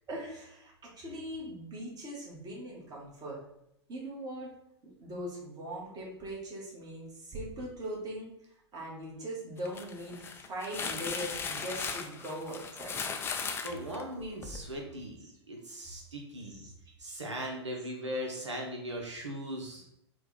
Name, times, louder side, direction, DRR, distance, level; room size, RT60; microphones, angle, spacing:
voice 1, 0.1-3.4 3.9-4.5 4.8-8.3 8.7-12.9 15.2-15.3 16.4-16.7 18.1-18.2, right 1 dB, 25° right, -3 dB, 1.6 m, -41 dB
sound 1, 9.6-14.7, left 5 dB, 15° left, 0.4 m, -37 dB
voice 2, 13.6-15.2 15.5-16.6 17.0-19.8, equal, 90° right, 0 dB, 0.9 m, -38 dB
4.3 x 2.4 x 4.1 m, 0.79 s
figure-of-eight pair, 100°, 15 cm